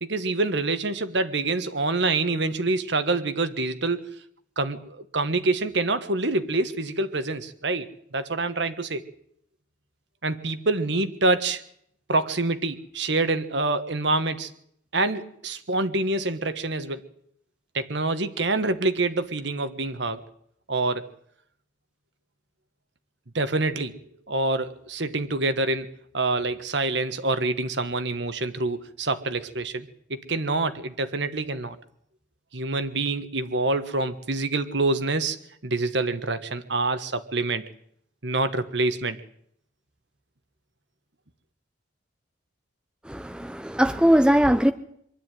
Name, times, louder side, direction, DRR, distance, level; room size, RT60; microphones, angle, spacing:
voice 1, 0.0-4.1 4.6-9.0 10.2-11.6 12.1-14.5 14.9-17.0 17.7-20.2 20.7-21.1 23.3-23.9 24.3-31.8 32.5-35.4 35.6-37.6 38.2-39.2, right 2 dB, 65° right, 1.5 m, -26 dB
voice 2, 43.1-44.7, equal, 5° right, 0.7 m, -20 dB
23.5 x 12.0 x 9.2 m
head